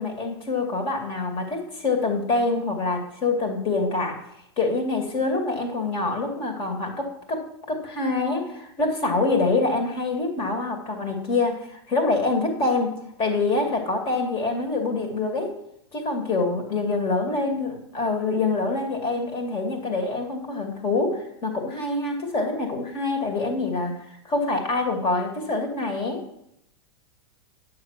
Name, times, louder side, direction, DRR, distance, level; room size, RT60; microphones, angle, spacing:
voice 1, 0.0-4.2 4.6-15.6 15.9-26.3, left 3 dB, 35° left, 4 dB, 2.5 m, -25 dB
9.7 x 6.7 x 6.0 m, 0.79 s
hypercardioid pair, 100°, 14 cm